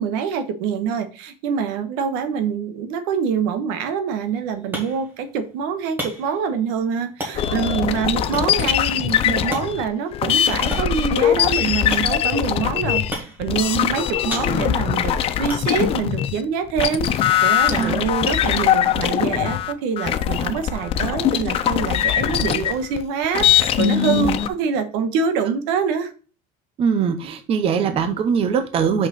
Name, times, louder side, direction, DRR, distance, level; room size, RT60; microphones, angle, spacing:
voice 1, 0.0-26.1, right 6 dB, 80° right, 9 dB, 1.3 m, -25 dB
sound 1, 4.1-19.7, equal, 10° right, 1.9 m, -38 dB
sound 2, 7.3-16.4 16.7-24.5, left 10 dB, 30° left, 0.5 m, -21 dB
voice 2, 26.8-29.1, right 6 dB, 30° right, 9 dB, 0.8 m, -21 dB
5.9 x 5.5 x 4.0 m, 0.35 s
cardioid pair, 170°, 18 cm